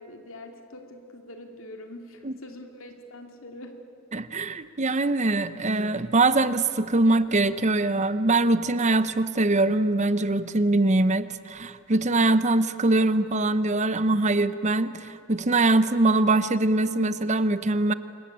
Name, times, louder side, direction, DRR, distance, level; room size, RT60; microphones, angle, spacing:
voice 1, 0.0-3.8, left 1 dB, 85° left, 4 dB, 2.8 m, -44 dB
voice 2, 4.1-17.9, right 2 dB, 35° right, 13 dB, 0.9 m, -23 dB
27.0 x 23.0 x 8.8 m, 2.7 s
head